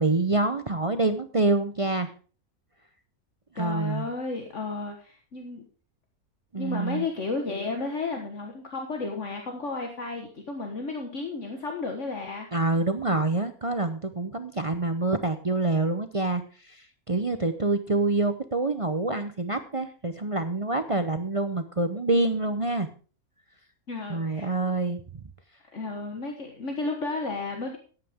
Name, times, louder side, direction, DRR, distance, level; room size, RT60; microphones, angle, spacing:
voice 1, 0.0-2.1 3.6-4.1 6.5-7.0 12.5-22.9 24.1-25.0, right 2 dB, 35° right, 9 dB, 0.6 m, -26 dB
voice 2, 3.6-5.6 6.5-12.5 23.9-24.5 25.7-27.8, left 3 dB, 55° left, 3 dB, 1.8 m, -33 dB
13.5 x 10.0 x 3.6 m, 0.37 s
omnidirectional pair, 1.5 m